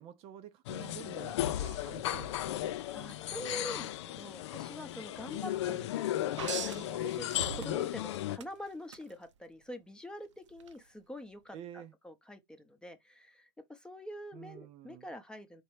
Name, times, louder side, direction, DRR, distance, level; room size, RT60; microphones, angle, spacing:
voice 1, 0.0-2.7 5.6-5.9 11.5-11.9 14.3-15.1, right 11 dB, 40° right, 0.6 m, -49 dB
sound 1, 0.7-8.4, left 13 dB, 70° left, 0.5 m, -35 dB
voice 2, 2.9-5.9 6.1-15.6, left 1 dB, 5° left, 0.8 m, -46 dB
sound 2, 6.4-8.0 8.4-9.0 10.6-10.7, right 7 dB, 85° right, 0.7 m, -40 dB
4.3 x 3.0 x 3.3 m
hypercardioid pair, 110°, 15 cm